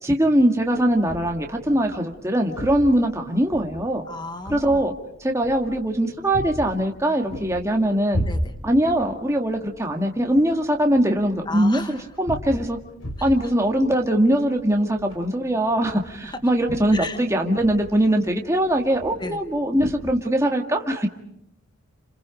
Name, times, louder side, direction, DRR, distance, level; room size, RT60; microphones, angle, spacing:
voice 1, 0.0-4.0 4.5-4.9 5.2-8.2 8.6-12.8 13.2-21.1, right 1 dB, 15° right, 2 dB, 1.9 m, -21 dB
sound 1, 0.7-20.1, equal, 75° left, 4.4 m, -36 dB
voice 2, 4.1-4.8 8.3-8.5 11.5-12.1 13.2-13.3 16.2-16.4 16.9-17.2 19.2-19.4, left 2 dB, 20° left, 9 dB, 1.2 m, -34 dB
30.0 x 27.5 x 5.2 m, 0.78 s
head